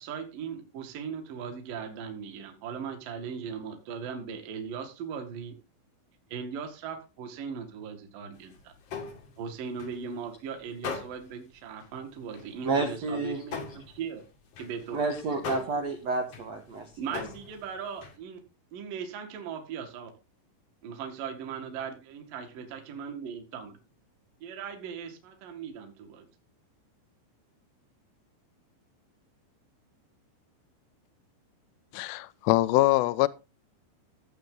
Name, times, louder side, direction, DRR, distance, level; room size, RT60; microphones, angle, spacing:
voice 1, 0.0-5.6 6.3-8.7 9.4-14.3 14.6-15.6 17.0-18.4 18.7-20.1 20.8-23.8 24.4-26.3, right 6 dB, 55° right, 3.0 m, -39 dB
sound 1, 8.3-10.3 10.7-11.4 11.8-11.9 12.3-18.2, left 5 dB, 60° left, 1.6 m, -40 dB
voice 2, 12.6-13.4 14.9-16.9, right 3 dB, 75° right, 1.5 m, -29 dB
voice 3, 31.9-33.3, left 18 dB, 85° left, 2.5 m, -23 dB
15.5 x 8.1 x 3.9 m
omnidirectional pair, 5.6 m